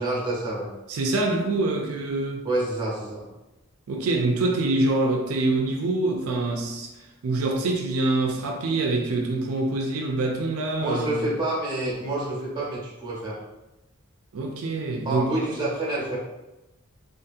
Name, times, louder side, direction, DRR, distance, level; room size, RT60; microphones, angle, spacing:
voice 1, 0.0-0.7 2.4-3.2 10.8-13.4 15.0-16.2, right 2 dB, 20° right, -4 dB, 0.8 m, -28 dB
voice 2, 0.9-2.4 3.9-6.9 7.2-11.2 14.3-15.3, right 2 dB, 90° right, 1 dB, 0.4 m, -25 dB
2.7 x 2.5 x 2.5 m, 0.99 s
head